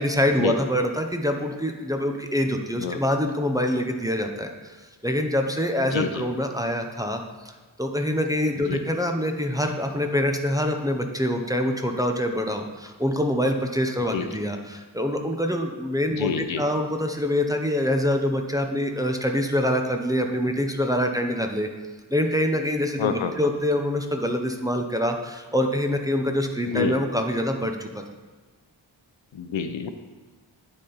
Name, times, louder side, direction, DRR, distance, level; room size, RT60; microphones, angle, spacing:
voice 1, 0.0-4.8 5.0-7.2 7.8-21.7 22.1-28.0, left 1 dB, 10° right, 3 dB, 0.6 m, -25 dB
voice 2, 5.9-6.2 8.7-8.8 14.1-14.2 16.2-16.6 23.0-23.3 26.7-26.9 29.3-29.9, left 6 dB, 85° left, 8 dB, 0.7 m, -27 dB
9.7 x 4.3 x 3.9 m, 1.3 s
wide cardioid pair, 80°, 45 cm